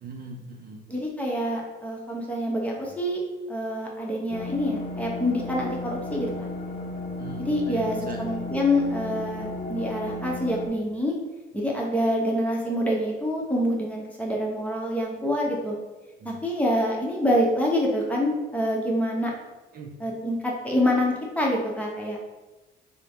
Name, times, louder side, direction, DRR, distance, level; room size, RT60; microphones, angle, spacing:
voice 1, 0.0-0.8 7.2-8.4 16.2-16.4 19.7-19.9, right 3 dB, 50° right, 2 dB, 0.5 m, -40 dB
voice 2, 0.9-3.2 3.5-6.5 7.4-11.2 11.5-15.7 16.2-19.3 20.0-22.2, equal, 5° left, -3 dB, 0.8 m, -26 dB
sound 1, 4.3-10.7, left 2 dB, 40° left, 0.7 m, -34 dB
3.3 x 2.1 x 4.1 m, 1.1 s
cardioid pair, 90°, 20 cm